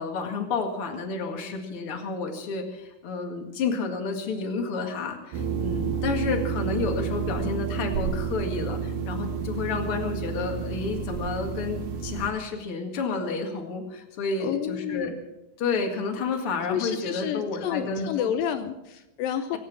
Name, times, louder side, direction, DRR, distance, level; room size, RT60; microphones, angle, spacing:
voice 1, 0.0-15.1 15.6-18.4, left 4 dB, 45° left, 3 dB, 2.1 m, -30 dB
sound 1, 5.3-12.3, right 6 dB, 75° right, 3.8 m, -30 dB
voice 2, 14.4-15.2 16.7-19.6, left 9 dB, 90° left, 8 dB, 1.9 m, -30 dB
25.0 x 9.2 x 6.1 m, 0.94 s
omnidirectional pair, 5.1 m